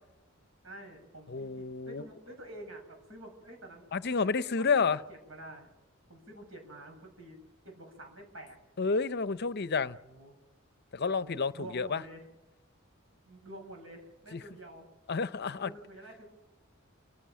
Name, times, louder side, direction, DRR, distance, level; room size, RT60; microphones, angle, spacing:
voice 1, 0.6-3.9 4.5-5.7 6.1-7.4 7.6-8.6 9.8-10.3 11.2-12.3 13.2-14.9 15.5-16.2, right 1 dB, 75° right, 7.6 m, -49 dB
voice 2, 1.3-2.0 3.9-5.0 8.8-10.0 10.9-12.0 14.3-14.4 15.1-15.7, left 4 dB, 55° left, 0.7 m, -30 dB
29.5 x 16.0 x 6.3 m
head